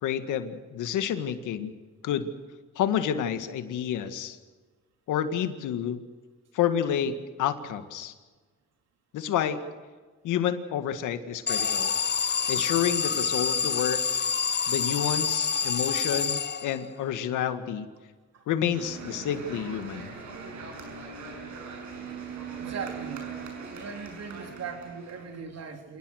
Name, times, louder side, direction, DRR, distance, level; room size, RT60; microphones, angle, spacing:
voice 1, 0.0-1.7 2.0-2.3 2.8-4.4 5.1-6.0 6.5-7.1 7.4-8.1 9.1-9.6 10.2-11.9 12.5-14.0 14.7-17.9 18.5-20.1, left 9 dB, 85° left, 9 dB, 1.9 m, -29 dB
Alarm, 11.5-17.0, left 6 dB, 35° left, 0.9 m, -27 dB
sound 1, 18.7-25.4, right 5 dB, 75° right, 6.9 m, -40 dB
voice 2, 22.6-23.3 23.7-26.0, right 5 dB, 55° right, 4 dB, 3.9 m, -39 dB
28.0 x 18.5 x 6.6 m, 1.4 s
cardioid pair, 90°, 30 cm